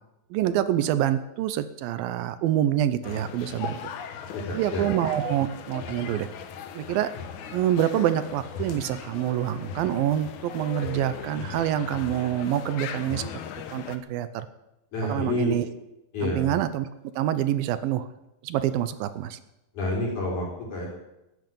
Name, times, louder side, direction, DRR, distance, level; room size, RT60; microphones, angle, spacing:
voice 1, 0.3-3.9 4.5-6.3 6.7-7.1 7.5-13.3 13.7-14.5 15.1-15.7 16.2-16.9 17.2-18.1 18.4-19.4, right 11 dB, 75° right, 13 dB, 2.4 m, -26 dB
sound 1, 3.0-14.0, left 7 dB, 70° left, 2.1 m, -38 dB
voice 2, 4.3-4.8 14.9-15.6 16.1-16.5 19.7-20.9, left 2 dB, 50° left, -4 dB, 5.7 m, -29 dB
13.0 x 9.5 x 9.1 m, 0.93 s
omnidirectional pair, 4.4 m